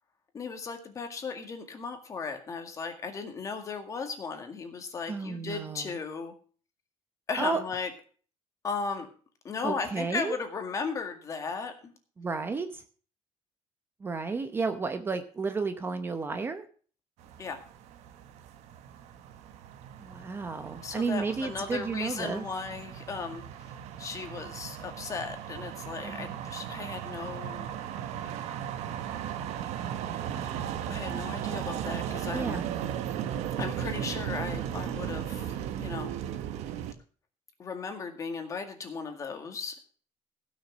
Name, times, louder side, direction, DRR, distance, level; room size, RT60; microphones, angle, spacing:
voice 1, 0.3-6.3 7.3-7.9 8.6-9.1 9.4-11.9 17.4-17.6 20.8-23.7 24.0-27.7 30.9-32.6 33.6-36.1 37.6-39.8, left 5 dB, 30° left, 5 dB, 2.0 m, -36 dB
voice 2, 5.1-6.0 7.4-7.6 9.6-10.4 12.2-12.8 14.0-16.6 20.0-22.4 26.0-26.4 32.3-32.7, right 4 dB, 20° right, 8 dB, 0.8 m, -32 dB
sound 1, 17.2-36.9, right 10 dB, 80° right, 1.2 m, -36 dB
16.0 x 6.4 x 6.2 m, 0.42 s
cardioid pair, 165°, 11 cm